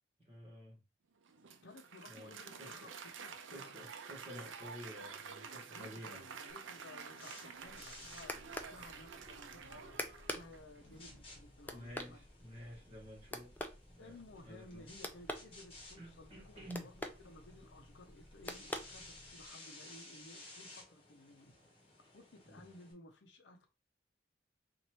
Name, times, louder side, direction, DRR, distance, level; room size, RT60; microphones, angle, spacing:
voice 1, 0.2-0.8 2.1-2.3 2.6-2.9 3.5-6.2 10.8-11.2 11.7-13.5 13.9-14.9 16.0-16.9 22.4-22.6, equal, 35° right, 1.6 m, -51 dB
Applause, 1.2-10.8, right 6 dB, 85° right, 0.6 m, -50 dB
voice 2, 1.6-3.7 5.6-10.0 10.3-12.3 14.0-21.5 22.1-23.7, left 2 dB, 70° left, 0.7 m, -57 dB
sound 1, 6.5-22.9, left 2 dB, 30° left, 1.2 m, -58 dB
sound 2, 7.6-19.5, left 1 dB, 10° left, 0.3 m, -48 dB
4.1 x 2.6 x 3.0 m
head